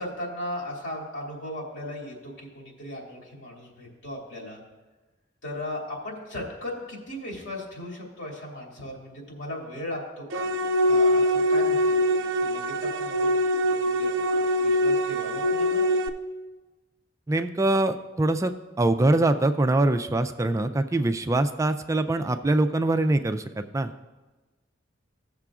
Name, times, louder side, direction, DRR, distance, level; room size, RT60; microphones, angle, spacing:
voice 1, 0.0-4.6 5.4-10.5 10.8-13.3 13.6-15.8, left 1 dB, 80° left, -2 dB, 2.4 m, -37 dB
sound 1, 10.3-16.1, equal, 85° right, 0.5 m, -23 dB
voice 2, 17.3-23.9, right 2 dB, 15° right, 8 dB, 0.3 m, -23 dB
16.5 x 6.7 x 2.4 m, 1.2 s
head